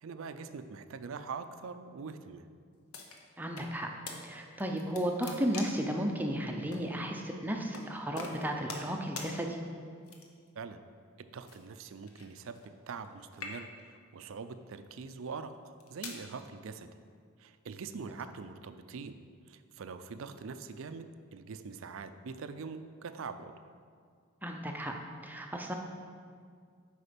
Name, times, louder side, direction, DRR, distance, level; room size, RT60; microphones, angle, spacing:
voice 1, 0.0-2.5 10.6-10.8 11.2-16.9 17.4-19.2 19.5-23.7, right 5 dB, 60° right, 10 dB, 0.4 m, -43 dB
sound 1, 2.9-3.7 4.1-4.2 4.6-5.9 6.7-6.8 7.7-7.9 8.2-8.9 9.2-9.3 10.0-10.5 11.5-13.1 13.3-13.9 14.6-14.9 15.5-16.2, left 4 dB, 75° left, 1.0 m, -44 dB
voice 2, 3.4-3.9 4.2-9.6 24.4-24.9 25.2-25.7, equal, 10° right, 2 dB, 0.5 m, -34 dB
8.4 x 5.0 x 5.2 m, 2.1 s
head